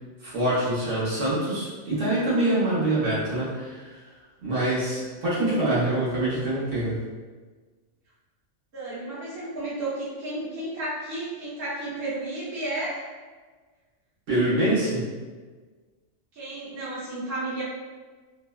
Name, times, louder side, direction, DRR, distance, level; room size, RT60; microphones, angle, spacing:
voice 1, 0.2-3.9 4.4-7.0 14.3-15.1, right 1 dB, 85° right, -9 dB, 1.3 m, -25 dB
voice 2, 8.7-13.0 16.3-17.6, right 2 dB, 55° right, -9 dB, 1.1 m, -32 dB
3.3 x 2.1 x 2.3 m, 1.4 s
omnidirectional pair, 1.3 m